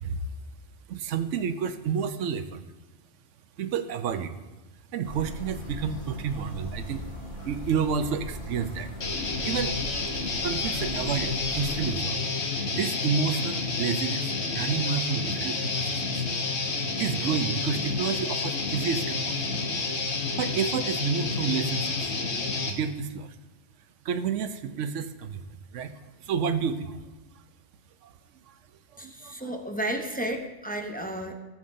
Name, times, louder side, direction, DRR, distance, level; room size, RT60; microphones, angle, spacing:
voice 1, 0.0-0.3 0.9-2.6 3.6-4.3 4.9-7.0 7.4-8.9 9.4-9.8 10.4-12.3 12.6-14.3 14.5-16.0 17.0-19.3 20.4-22.0 22.6-23.4 24.0-25.4 25.7-27.0 28.0-28.1 28.5-28.6 28.9-29.4, right 6 dB, 85° right, 10 dB, 1.0 m, -30 dB
sound 1, 5.0-12.0, equal, 35° left, 2.5 m, -39 dB
Guitar, 9.0-22.7, left 3 dB, 70° left, 1.4 m, -29 dB
voice 2, 29.0-31.4, right 1 dB, 10° left, 3 dB, 0.6 m, -32 dB
16.5 x 7.6 x 2.6 m, 1.1 s
omnidirectional pair, 1.2 m